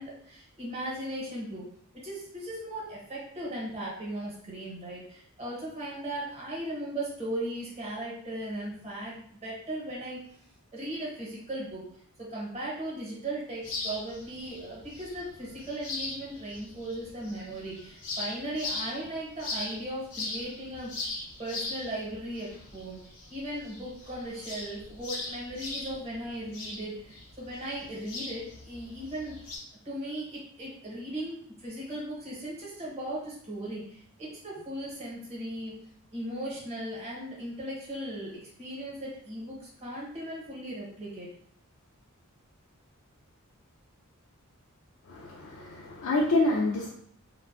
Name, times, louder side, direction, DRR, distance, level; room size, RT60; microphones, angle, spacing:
voice 1, 0.0-1.6 2.0-10.2 10.7-11.8 12.2-20.9 21.4-23.0 23.3-29.4 29.8-35.7 36.1-38.3 38.6-41.3, right 1 dB, 30° right, -5 dB, 0.9 m, -37 dB
sound 1, 13.6-29.6, left 2 dB, 85° left, 0.9 m, -40 dB
voice 2, 45.1-46.9, left 2 dB, 65° left, -3 dB, 0.4 m, -27 dB
2.5 x 2.2 x 2.4 m, 0.64 s
head